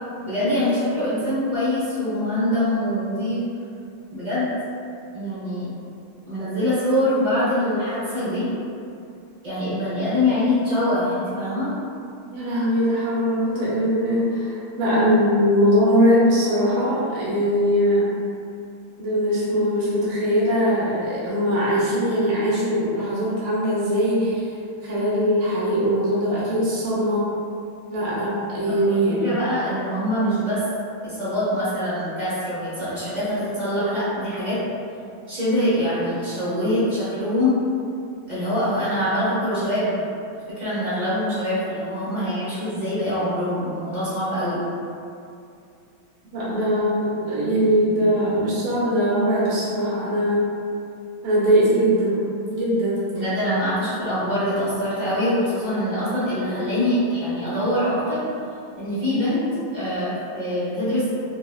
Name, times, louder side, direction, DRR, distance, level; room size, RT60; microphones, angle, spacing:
voice 1, 0.2-3.4 4.1-4.5 5.1-5.7 6.3-8.5 9.4-11.7 28.8-30.6 31.0-34.6 35.3-37.5 38.3-39.9 40.5-44.6 53.1-58.2 58.7-59.4 59.7-61.1, left 1 dB, 45° right, -12 dB, 0.5 m, -24 dB
voice 2, 12.3-18.1 19.0-24.5 24.8-27.2 27.9-29.2 46.3-50.5 51.2-52.2 52.5-53.1, equal, 80° right, -9 dB, 1.5 m, -21 dB
4.0 x 2.2 x 2.3 m, 2.5 s
omnidirectional pair, 2.3 m